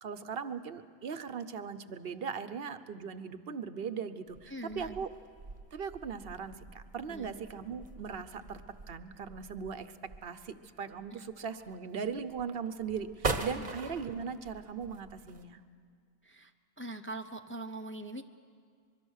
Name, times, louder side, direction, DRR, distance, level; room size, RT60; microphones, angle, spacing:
voice 1, 0.0-5.1 5.7-8.6 8.9-9.9 10.2-15.6, right 6 dB, 65° right, 11 dB, 1.0 m, -39 dB
sound 1, 4.3-15.5, right 3 dB, 40° right, 1.2 m, -42 dB
voice 2, 4.5-5.1 7.1-7.3 11.1-11.2 13.6-13.7 16.2-16.5 16.8-18.2, right 1 dB, 15° left, 5 dB, 0.6 m, -42 dB
24.0 x 22.5 x 6.4 m, 2.2 s
omnidirectional pair, 1.1 m